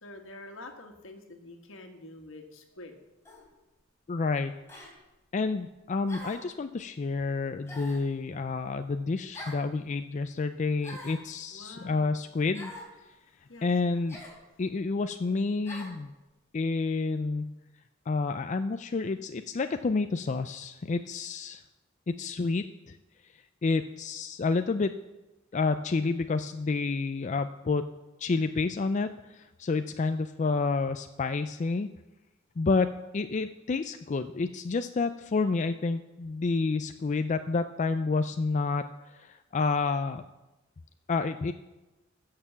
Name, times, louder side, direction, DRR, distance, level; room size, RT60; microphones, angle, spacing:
voice 1, 0.0-3.0 11.5-12.2 13.5-14.0, left 2 dB, 75° left, 4 dB, 1.8 m, -47 dB
sound 1, 3.3-3.5 4.7-4.9 6.1-6.5 7.7-8.1 9.3-9.7 10.8-11.3 12.5-12.9 14.1-14.4 15.7-16.0, left 1 dB, 15° left, 3.4 m, -43 dB
voice 2, 4.1-4.5 5.3-12.7 13.6-14.2 14.6-16.1 16.5-17.5 18.1-21.6 22.1-22.9 23.6-24.9 25.5-27.9 28.2-31.9 32.6-40.2 41.1-41.5, left 4 dB, 35° left, 9 dB, 0.4 m, -29 dB
14.5 x 6.7 x 7.3 m, 1.0 s
head